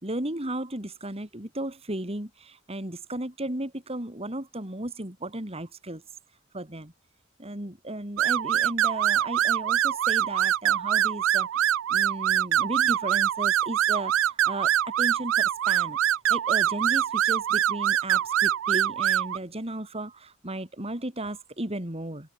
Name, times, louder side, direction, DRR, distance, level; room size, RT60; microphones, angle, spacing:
voice 1, 0.0-6.9 7.4-22.3, right 1 dB, 30° right, 3.4 m, -35 dB
sound 1, 8.2-19.4, right 11 dB, 75° right, 0.3 m, -24 dB
head